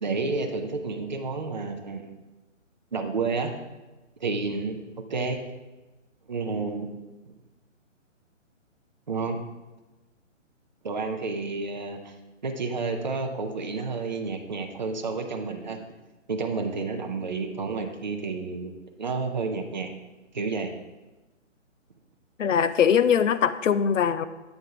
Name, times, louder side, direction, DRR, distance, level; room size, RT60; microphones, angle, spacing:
voice 1, 0.0-2.1 2.9-3.5 4.2-5.4 6.3-6.9 9.1-9.4 10.8-12.1 12.4-15.8 16.3-18.7 19.0-19.9 20.3-20.7, right 4 dB, 35° right, 4 dB, 0.6 m, -30 dB
voice 2, 22.4-24.2, left 7 dB, 75° left, 13 dB, 0.6 m, -21 dB
7.9 x 3.6 x 5.5 m, 1.1 s
hypercardioid pair, 175°, 38 cm